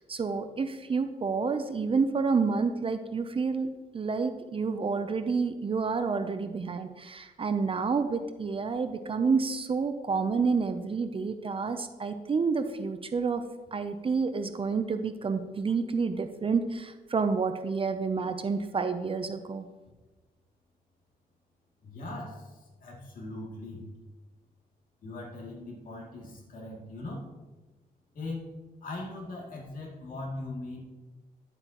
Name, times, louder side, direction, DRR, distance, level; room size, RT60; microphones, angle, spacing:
voice 1, 0.1-3.7 3.9-13.4 13.7-19.6, right 5 dB, 35° right, 8 dB, 0.6 m, -29 dB
voice 2, 21.8-22.5 22.8-23.8 25.0-27.2 28.1-28.5 28.8-30.8, left 2 dB, 60° left, -2 dB, 2.6 m, -40 dB
11.0 x 7.8 x 3.0 m, 1.2 s
cardioid pair, 100°, 16 cm